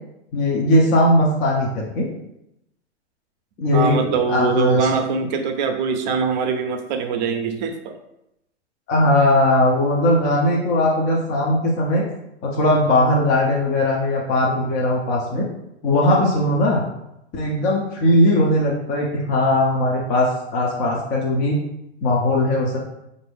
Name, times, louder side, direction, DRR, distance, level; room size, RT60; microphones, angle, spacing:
voice 1, 0.3-2.1 3.6-4.9 8.9-12.0 12.4-15.5 15.8-16.8 17.3-21.6 22.0-22.8, left 1 dB, 25° left, -2 dB, 0.5 m, -19 dB
voice 2, 3.7-8.0, right 5 dB, 40° right, 6 dB, 0.6 m, -22 dB
4.3 x 2.6 x 3.3 m, 0.84 s
hypercardioid pair, 125°, 34 cm